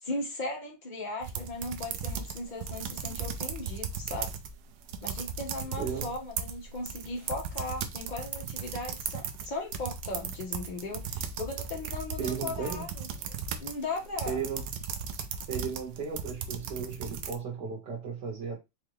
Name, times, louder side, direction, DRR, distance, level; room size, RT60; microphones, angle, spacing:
voice 1, 0.0-4.4 5.0-13.1 13.6-14.4, left 2 dB, 60° left, 0.4 m, -37 dB
sound 1, 1.2-4.5 4.8-17.3, right 6 dB, 90° right, 0.8 m, -37 dB
voice 2, 5.8-6.1 12.2-12.8 14.3-14.6 15.5-18.6, right 6 dB, 60° right, 1.6 m, -35 dB
4.5 x 2.5 x 3.1 m
omnidirectional pair, 2.3 m